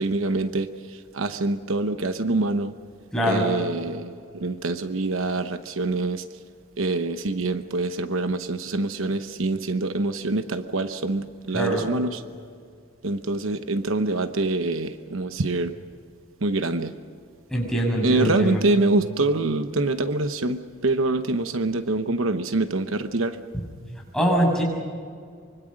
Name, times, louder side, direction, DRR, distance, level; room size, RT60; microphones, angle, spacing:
voice 1, 0.0-2.7 3.2-6.2 6.8-12.2 13.0-15.7 16.4-16.9 18.0-23.4, right 2 dB, 75° right, 9 dB, 1.0 m, -25 dB
voice 2, 3.1-3.5 11.5-11.8 17.5-18.6 23.5-23.6 24.1-24.6, equal, 5° left, -2 dB, 6.3 m, -23 dB
25.0 x 24.5 x 6.4 m, 2.1 s
head